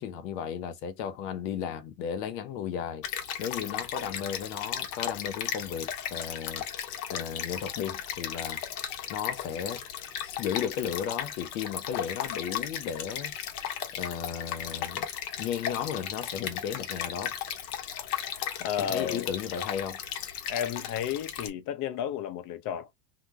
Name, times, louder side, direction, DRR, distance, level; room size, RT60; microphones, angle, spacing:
voice 1, 0.0-3.0 3.4-6.6 7.1-8.6 9.1-9.8 10.2-13.3 13.9-15.1 15.4-17.3 18.8-20.0, left 8 dB, 90° left, 0.8 m, -34 dB
Stream, 3.0-21.5, left 9 dB, 65° left, 1.0 m, -36 dB
voice 2, 18.6-19.3 20.5-22.9, left 9 dB, 40° left, 0.6 m, -32 dB
2.9 x 2.0 x 3.4 m
supercardioid pair, 125°, 48 cm